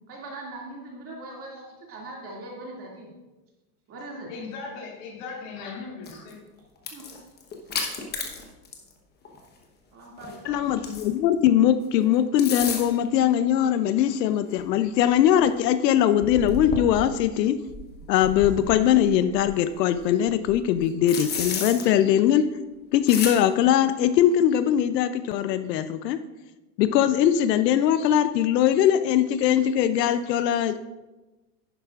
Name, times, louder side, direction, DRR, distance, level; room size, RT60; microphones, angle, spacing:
voice 1, 0.1-3.1 3.9-4.3 6.9-7.2 9.9-10.7, right 2 dB, 30° right, -2 dB, 2.3 m, -40 dB
voice 2, 4.3-6.4, left 4 dB, 55° left, -1 dB, 2.6 m, -38 dB
sound 1, 6.1-6.3 6.8-8.9 9.2-9.4 10.2-11.3 12.2-13.1 14.0-14.1 14.6-14.7 15.1-15.2 15.4-15.5 16.2-17.2 17.7-19.5 20.0-21.9 23.1-23.4, left 4 dB, 20° left, 1.0 m, -33 dB
voice 3, 10.5-17.6 18.1-22.5 22.9-26.2 26.8-30.8, left 10 dB, 85° left, 12 dB, 0.7 m, -21 dB
11.0 x 9.8 x 2.4 m, 1.1 s
supercardioid pair, 155°, 48 cm